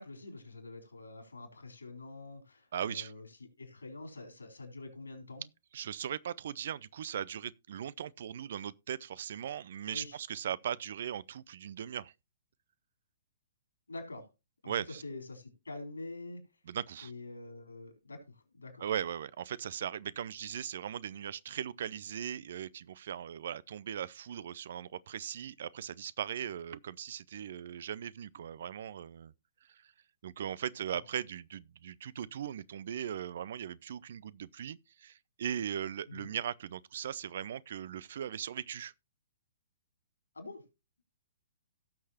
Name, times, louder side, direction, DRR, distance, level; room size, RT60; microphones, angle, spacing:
voice 1, 0.0-3.3 3.6-5.4 9.9-10.2 13.9-14.3 14.6-16.4 17.0-18.9 36.1-36.3 40.3-40.6, left 2 dB, 75° left, 3.9 m, -46 dB
voice 2, 2.7-3.1 5.7-12.1 14.7-15.0 16.7-17.1 18.8-29.3 29.7-29.9 30.2-38.9, right 9 dB, 50° right, 0.5 m, -39 dB
17.5 x 6.5 x 2.8 m
figure-of-eight pair, 120°, 0 cm